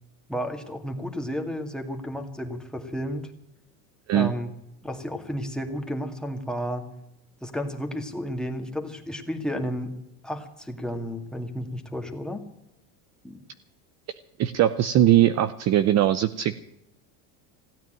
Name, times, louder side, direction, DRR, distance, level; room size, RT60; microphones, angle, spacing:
voice 1, 0.3-3.3 4.1-4.5 4.8-6.9 7.4-9.9 10.2-12.4 13.2-13.4, equal, ahead, 3 dB, 2.1 m, -32 dB
voice 2, 14.4-16.5, right 12 dB, 35° right, 12 dB, 0.7 m, -20 dB
16.5 x 9.2 x 9.0 m, 0.84 s
supercardioid pair, 125°, 45 cm